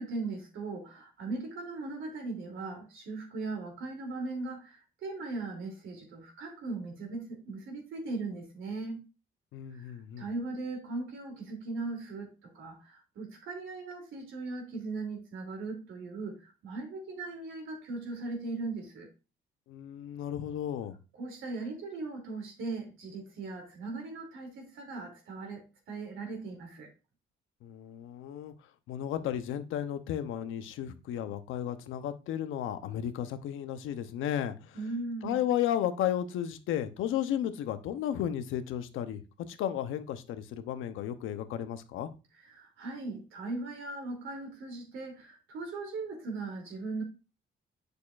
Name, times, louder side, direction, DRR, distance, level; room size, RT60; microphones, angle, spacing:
voice 1, 0.0-9.0 9.7-19.1 21.1-26.9 34.7-35.4 42.4-47.0, right 3 dB, 80° right, 2.9 m, -39 dB
voice 2, 9.5-10.3 19.7-21.0 27.6-28.5 28.9-34.8 35.2-39.2 39.5-42.1, left 10 dB, 85° left, 0.8 m, -33 dB
8.4 x 6.6 x 2.5 m
cardioid pair, 90°, 20 cm